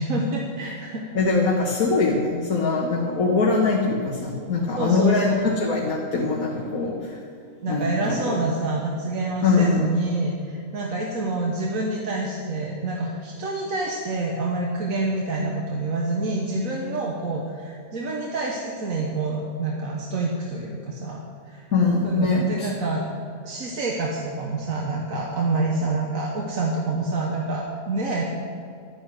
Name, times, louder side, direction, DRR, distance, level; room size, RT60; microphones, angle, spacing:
voice 1, 0.0-1.1 4.8-5.3 7.6-21.2 21.5-21.7 22.0-23.0 23.4-28.2, right 2 dB, 70° right, -1 dB, 1.6 m, -27 dB
voice 2, 1.1-7.2 7.7-8.0 8.3-8.4 9.4-9.8 21.7-22.7, left 3 dB, 80° left, -3 dB, 1.8 m, -22 dB
11.5 x 9.9 x 6.4 m, 2.5 s
omnidirectional pair, 1.5 m